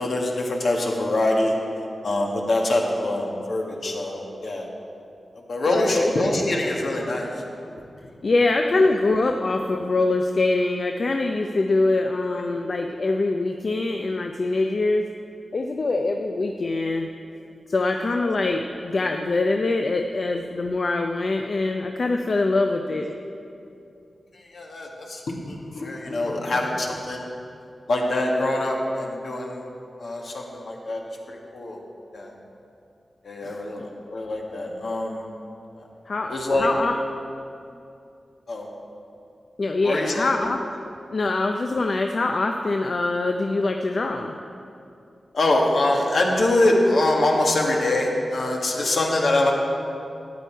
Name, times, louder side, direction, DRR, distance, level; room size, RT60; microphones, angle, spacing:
voice 1, 0.0-1.5 2.0-4.7 5.5-7.3 7.7-7.8 12.2-12.4 20.1-20.2 23.1-23.2 24.3-27.3 27.9-29.6 30.0-31.0 31.3-31.8 32.1-32.3 33.2-35.2 36.3-36.7 38.5-38.7 39.8-40.4 45.3-49.5, left 2 dB, 70° left, 0 dB, 1.6 m, -24 dB
voice 2, 5.7-6.1 8.2-15.0 15.5-17.1 17.7-23.1 33.4-33.9 36.1-36.9 39.6-40.6 41.1-44.4, left 2 dB, 50° left, 4 dB, 0.5 m, -24 dB
12.5 x 9.1 x 4.6 m, 2.6 s
wide cardioid pair, 100°, 0 cm